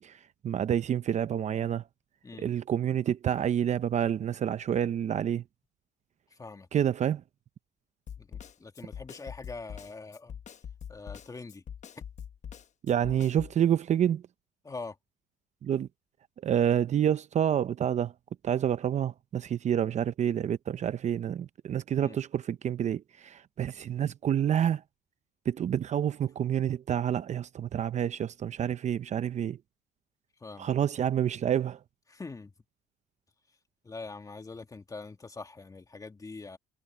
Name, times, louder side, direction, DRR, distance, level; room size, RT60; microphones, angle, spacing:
voice 1, 0.0-1.8 2.4-5.4 6.7-7.2 12.8-14.2 15.6-15.9 16.4-18.1 18.4-24.8 25.5-29.6 30.6-31.8, right 9 dB, 45° right, 0.7 m, -28 dB
voice 2, 6.3-6.7 8.2-10.3 10.9-11.6 11.9-12.0 14.6-15.0 22.0-22.2 30.4-30.7 32.1-32.5 33.8-36.6, left 3 dB, 20° left, 2.0 m, -43 dB
Snare drum, 8.1-13.6, left 8 dB, 45° left, 1.0 m, -43 dB
cardioid pair, 110°, 17 cm